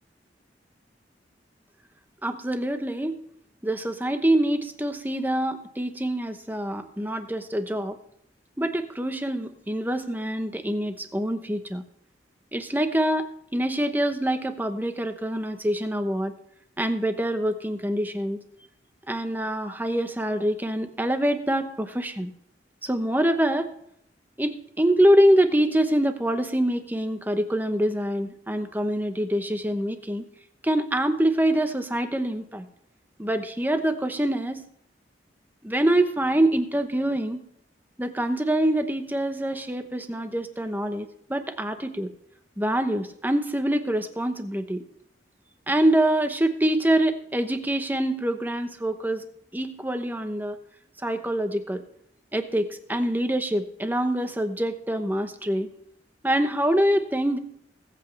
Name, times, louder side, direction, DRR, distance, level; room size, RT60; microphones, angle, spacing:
voice 1, 2.2-3.1 3.6-8.0 8.6-11.8 12.5-16.3 16.8-18.4 19.1-22.3 22.8-23.7 24.4-30.2 30.6-32.7 33.2-34.6 35.6-37.4 38.0-42.1 42.6-44.8 45.7-49.2 49.5-50.6 51.0-51.8 52.3-55.7 56.2-57.4, right 1 dB, 10° right, 8 dB, 0.9 m, -25 dB
20.5 x 8.2 x 3.3 m, 0.69 s
head